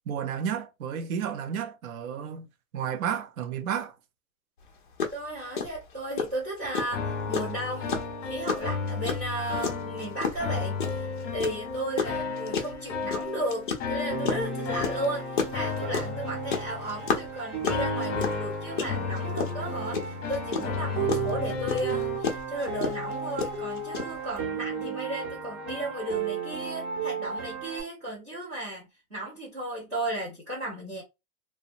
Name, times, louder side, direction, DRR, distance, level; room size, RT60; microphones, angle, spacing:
voice 1, 0.1-2.5 2.7-3.9, right 8 dB, 65° right, 0.6 m, -32 dB
sound 1, 4.6-4.7 5.0-5.2 5.6-24.4, left 5 dB, 35° left, 0.4 m, -31 dB
voice 2, 5.1-31.0, right 1 dB, 15° right, 0.5 m, -35 dB
sound 2, 6.6-22.2, left 5 dB, 55° left, 0.8 m, -34 dB
Piano, 14.1-27.8, right 5 dB, 40° right, 1.1 m, -34 dB
2.8 x 2.2 x 2.5 m
hypercardioid pair, 170°, 45 cm